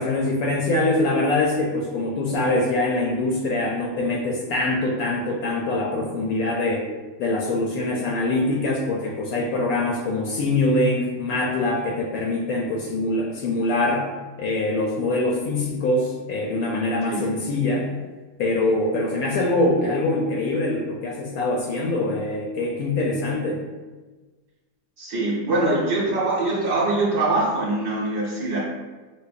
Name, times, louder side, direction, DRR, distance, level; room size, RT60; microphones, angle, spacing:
voice 1, 0.0-6.9 7.2-14.1 14.4-17.9 18.4-23.6, left 2 dB, 70° left, -1 dB, 0.9 m, -23 dB
voice 2, 25.0-28.6, right 2 dB, 55° right, -6 dB, 1.1 m, -23 dB
5.2 x 2.0 x 2.4 m, 1.3 s
omnidirectional pair, 1.8 m